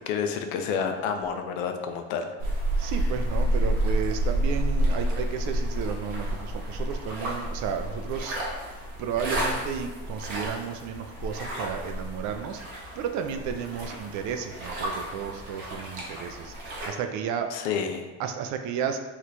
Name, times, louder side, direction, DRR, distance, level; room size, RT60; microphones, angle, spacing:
voice 1, 0.1-2.3 17.5-18.1, left 6 dB, 80° left, 6 dB, 0.5 m, -29 dB
sound 1, 2.4-16.9, right 1 dB, 75° right, 1.1 m, -30 dB
voice 2, 2.8-8.4 9.0-17.7 18.2-19.0, right 7 dB, 55° right, 6 dB, 0.4 m, -33 dB
3.0 x 2.4 x 3.2 m, 1.2 s
supercardioid pair, 90°, 37 cm